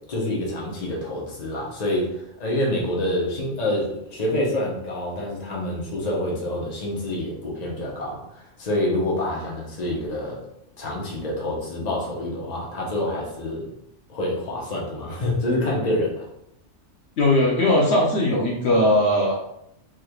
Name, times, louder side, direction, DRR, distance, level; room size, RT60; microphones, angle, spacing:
voice 1, 0.1-10.5 10.8-13.7 14.1-16.2, left 1 dB, 40° left, -3 dB, 0.9 m, -27 dB
voice 2, 17.2-19.4, left 1 dB, 65° left, -3 dB, 0.9 m, -19 dB
3.5 x 3.1 x 2.3 m, 0.79 s
omnidirectional pair, 1.2 m